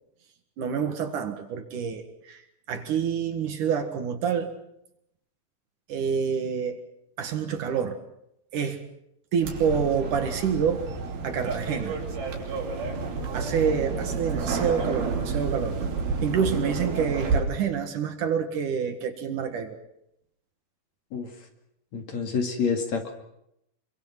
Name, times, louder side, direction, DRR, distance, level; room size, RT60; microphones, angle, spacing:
voice 1, 0.6-2.4 2.7-4.5 5.9-6.8 7.2-8.0 8.5-8.8 9.3-10.9 11.2-12.0 13.3-15.8 16.2-19.8, right 7 dB, 60° right, 7 dB, 2.9 m, -27 dB
sound 1, 9.4-17.4, right 4 dB, 75° right, 4.9 m, -30 dB
voice 2, 21.9-23.1, left 5 dB, 50° left, 4 dB, 3.3 m, -28 dB
26.0 x 24.0 x 6.0 m, 0.79 s
omnidirectional pair, 4.3 m